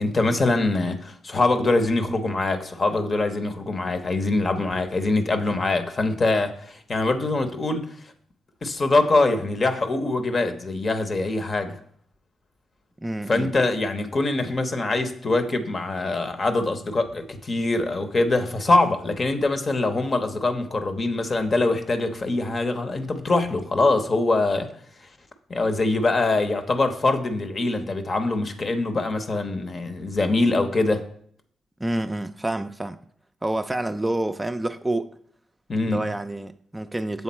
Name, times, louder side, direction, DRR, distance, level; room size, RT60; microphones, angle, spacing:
voice 1, 0.0-7.9 8.6-11.8 13.3-24.7 25.5-31.0 35.7-36.0, left 2 dB, 45° left, 0.8 m, -23 dB
voice 2, 13.0-13.5 31.8-33.0 33.4-35.1 35.9-37.2, right 1 dB, 15° right, 0.4 m, -28 dB
7.0 x 3.6 x 4.3 m
hypercardioid pair, 45°, 0 cm